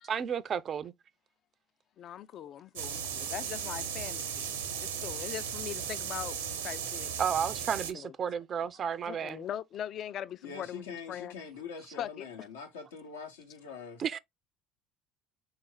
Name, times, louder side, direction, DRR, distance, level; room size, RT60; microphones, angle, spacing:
voice 1, 0.0-0.9 7.2-9.4 14.0-14.2, right 7 dB, 45° right, 0.3 m, -32 dB
voice 2, 2.0-4.5 4.8-6.4 6.6-7.1 7.9-8.1 9.1-11.4 11.9-12.5, left 10 dB, 50° left, 0.3 m, -41 dB
sound 1, 2.7-7.9, right 7 dB, 85° right, 0.6 m, -36 dB
voice 3, 10.4-14.0, left 6 dB, 85° left, 0.8 m, -44 dB
4.0 x 2.5 x 3.8 m
hypercardioid pair, 65°, 0 cm